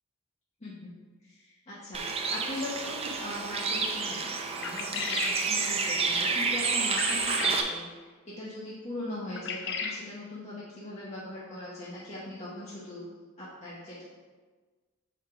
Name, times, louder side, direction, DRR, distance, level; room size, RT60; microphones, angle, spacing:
voice 1, 0.6-0.9 1.2-13.0 13.4-14.0, left 1 dB, 30° left, -8 dB, 1.0 m, -40 dB
Bird, 1.9-7.6, right 4 dB, 30° right, 0.5 m, -29 dB
sound 1, 4.6-5.4 7.0-7.7 9.4-10.0, left 5 dB, 55° left, 0.5 m, -34 dB
6.5 x 4.8 x 3.6 m, 1.4 s
head